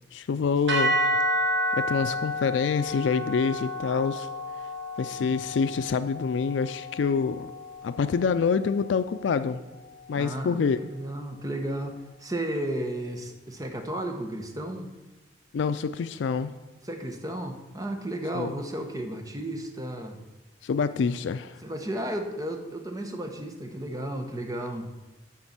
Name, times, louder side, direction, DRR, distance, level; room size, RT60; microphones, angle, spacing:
voice 1, 0.1-1.0 1.7-4.3 5.0-7.5 7.8-9.6 10.1-10.8 15.5-16.5 18.3-18.5 20.6-21.6, left 5 dB, 80° left, 12 dB, 0.4 m, -26 dB
sound 1, 0.7-8.9, equal, 85° right, 2.3 m, -30 dB
voice 2, 10.1-14.9 16.8-20.2 21.6-24.9, right 1 dB, 20° right, 4 dB, 1.0 m, -33 dB
9.3 x 4.4 x 7.3 m, 1.1 s
head